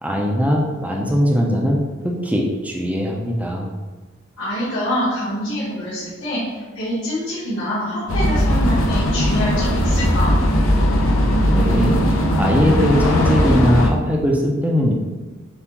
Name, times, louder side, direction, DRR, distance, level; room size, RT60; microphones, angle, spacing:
voice 1, 0.0-3.7 11.5-12.0 12.3-14.9, equal, 5° right, -1 dB, 0.4 m, -20 dB
voice 2, 4.4-10.3, equal, 65° left, -10 dB, 1.4 m, -25 dB
sound 1, 8.1-13.9, equal, 80° left, 0.6 m, -18 dB
6.9 x 2.4 x 2.9 m, 1.3 s
head